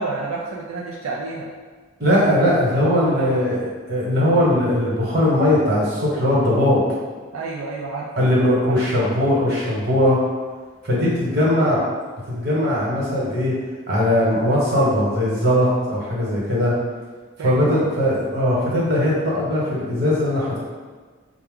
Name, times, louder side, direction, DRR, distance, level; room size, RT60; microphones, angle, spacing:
voice 1, 0.0-1.5 3.0-3.5 7.3-8.1 8.6-8.8 11.2-11.5 17.4-17.9, right 3 dB, 85° right, -3 dB, 0.5 m, -30 dB
voice 2, 2.0-3.6 3.9-6.8 8.2-10.2 10.8-11.8 12.3-13.5 13.9-16.7 17.4-20.6, left 1 dB, 50° right, -6 dB, 1.3 m, -19 dB
5.6 x 2.3 x 3.7 m, 1.4 s
head